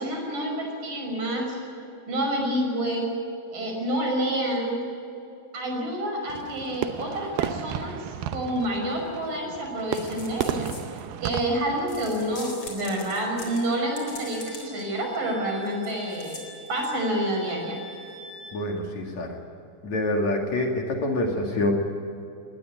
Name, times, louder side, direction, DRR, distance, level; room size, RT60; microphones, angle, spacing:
voice 1, 0.0-1.6 2.1-3.1 3.5-4.8 5.5-8.1 8.3-10.7 11.2-16.4 16.7-17.8, right 1 dB, 60° right, 2 dB, 7.5 m, -28 dB
Fireworks, 6.3-12.4, right 10 dB, 80° right, 2.6 m, -34 dB
sound 1, 9.9-11.4 11.9-14.8 15.1-15.2 15.6-17.0, left 3 dB, 35° left, 4.9 m, -43 dB
Wind instrument woodwind instrument, 13.8-18.6, right 1 dB, 20° right, 3.8 m, -46 dB
voice 2, 18.5-19.4 19.8-21.7, left 1 dB, 50° left, 1 dB, 3.2 m, -26 dB
20.5 x 19.0 x 9.9 m, 2.7 s
omnidirectional pair, 4.4 m